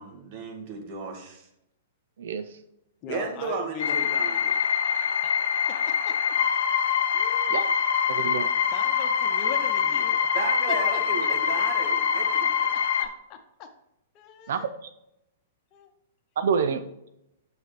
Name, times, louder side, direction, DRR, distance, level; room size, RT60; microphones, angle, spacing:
voice 1, 0.0-1.5 3.1-4.6 10.3-12.7, right 4 dB, 50° right, 4 dB, 1.6 m, -34 dB
voice 2, 2.2-2.6 7.5-7.6 8.1-8.5 14.5-14.9 16.4-16.8, right 6 dB, 70° right, 11 dB, 0.5 m, -27 dB
voice 3, 3.0-4.1 5.2-5.4 5.7-6.4 7.1-7.5 8.7-10.2 10.7-11.3 12.4-13.7 14.1-14.7 15.7-15.9, left 8 dB, 40° left, 6 dB, 1.0 m, -41 dB
sound 1, 3.8-13.1, left 7 dB, 70° left, 0.8 m, -24 dB
6.8 x 6.6 x 3.1 m, 0.82 s
hypercardioid pair, 120°, 0 cm